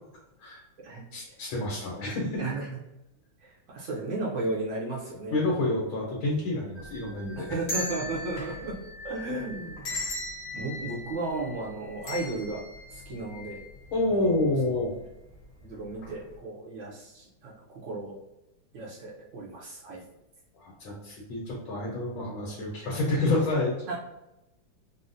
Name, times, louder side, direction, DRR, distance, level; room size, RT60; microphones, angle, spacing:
voice 1, 1.1-2.5 5.3-7.5 13.9-14.9 20.5-23.9, left 2 dB, 85° left, -3 dB, 1.6 m, -28 dB
voice 2, 3.4-5.3 7.4-8.8 9.0-10.0 10.5-12.6 12.9-13.6 14.1-14.3 15.6-18.1 18.7-20.0 23.9-24.0, right 2 dB, 85° right, -5 dB, 0.6 m, -34 dB
sound 1, 6.8-13.9 14.3-14.4 15.3-15.6 16.0-16.1, left 1 dB, 55° left, 1.2 m, -38 dB
3.9 x 2.0 x 2.5 m, 0.92 s
omnidirectional pair, 2.2 m